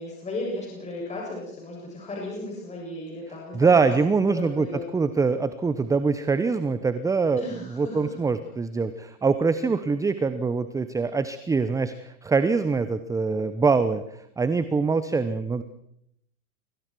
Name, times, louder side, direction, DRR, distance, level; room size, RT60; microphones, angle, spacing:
voice 1, 0.0-3.9 4.4-4.8 7.4-8.1, left 2 dB, 15° left, -3 dB, 7.4 m, -35 dB
voice 2, 3.5-4.7 4.9-14.0 14.4-15.6, right 4 dB, 5° right, 12 dB, 0.8 m, -24 dB
30.0 x 24.0 x 4.7 m, 0.75 s
hypercardioid pair, 105°, 44 cm